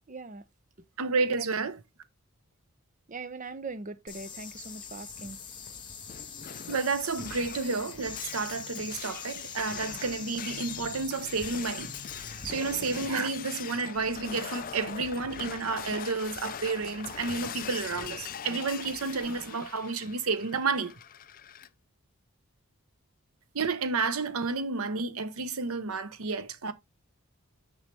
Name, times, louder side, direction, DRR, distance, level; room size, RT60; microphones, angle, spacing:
voice 1, 0.1-0.4 1.4-1.6 3.1-5.4, right 3 dB, 35° right, 0.6 m, -41 dB
voice 2, 1.0-1.8 6.7-12.0 12.4-20.9 23.5-26.7, right 4 dB, 75° right, 0.8 m, -31 dB
sound 1, 4.1-13.1, left 6 dB, 20° left, 1.4 m, -43 dB
sound 2, 5.4-14.4, left 2 dB, 75° left, 1.2 m, -53 dB
Shatter, 6.1-21.7, left 8 dB, 40° left, 0.4 m, -42 dB
6.2 x 5.6 x 3.2 m
head